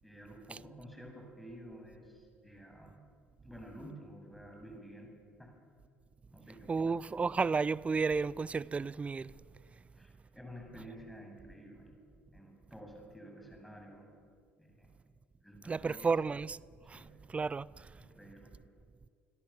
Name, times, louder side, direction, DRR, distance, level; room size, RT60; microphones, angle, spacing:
voice 1, 0.0-3.0 3.4-5.5 6.3-7.1 10.0-11.9 12.3-14.1 14.6-14.9 15.4-16.1 16.8-17.2 17.9-18.5, equal, ahead, 8.0 m, -51 dB
voice 2, 6.7-9.3 15.7-16.6 16.9-17.0 17.3-17.9, right 4 dB, 20° right, 0.5 m, -32 dB
28.0 x 22.0 x 7.5 m
figure-of-eight pair, 55°, 6 cm